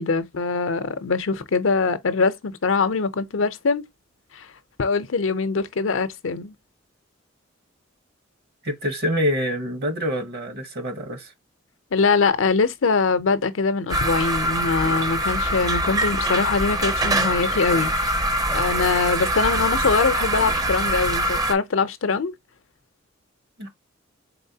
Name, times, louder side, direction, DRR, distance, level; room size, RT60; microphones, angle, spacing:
voice 1, 0.0-3.9 4.3-4.5 4.8-6.5 11.9-22.3, left 4 dB, 70° left, 0.6 m, -23 dB
voice 2, 8.6-11.3 23.6-23.7, equal, 55° right, 1.0 m, -26 dB
sound 1, 13.9-21.5, right 1 dB, 20° right, 0.6 m, -23 dB
4.2 x 4.0 x 2.7 m
head